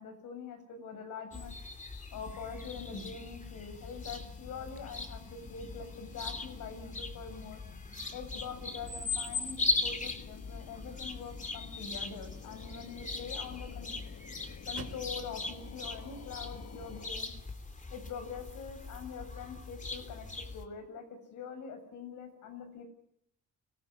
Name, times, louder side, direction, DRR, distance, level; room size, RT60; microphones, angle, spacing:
voice 1, 0.0-1.6 2.1-7.6 8.1-14.0 14.7-17.3 17.9-20.3 20.5-21.0 21.3-22.8, left 6 dB, 80° left, 8 dB, 7.5 m, -44 dB
sound 1, 1.3-20.6, left 3 dB, 25° left, 3.2 m, -40 dB
sound 2, 2.1-17.1, left 7 dB, 60° left, 1.8 m, -52 dB
sound 3, 11.2-17.4, right 6 dB, 65° right, 5.5 m, -56 dB
25.5 x 17.0 x 9.9 m, 0.74 s
cardioid pair, 90°, 30 cm